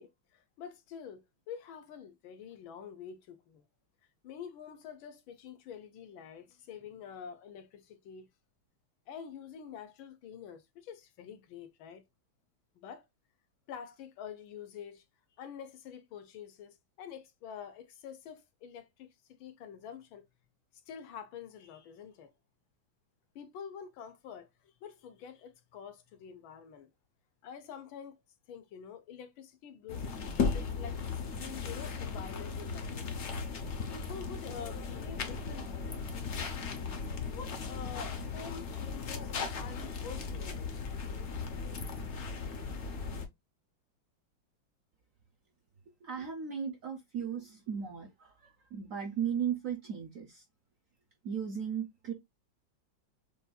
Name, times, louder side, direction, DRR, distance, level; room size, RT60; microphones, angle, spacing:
voice 1, 0.0-3.6 4.2-8.3 9.1-12.0 12.8-13.0 13.7-15.0 15.4-20.3 20.9-22.3 23.3-26.9 27.4-28.2 28.5-31.0 31.4-35.9 37.3-40.7, left 7 dB, 75° left, 1.6 m, -47 dB
sound 1, 29.9-43.3, left 5 dB, 55° left, 0.8 m, -37 dB
voice 2, 46.0-50.4 51.2-52.1, right 8 dB, 60° right, 0.9 m, -36 dB
7.0 x 2.6 x 2.2 m
omnidirectional pair, 2.2 m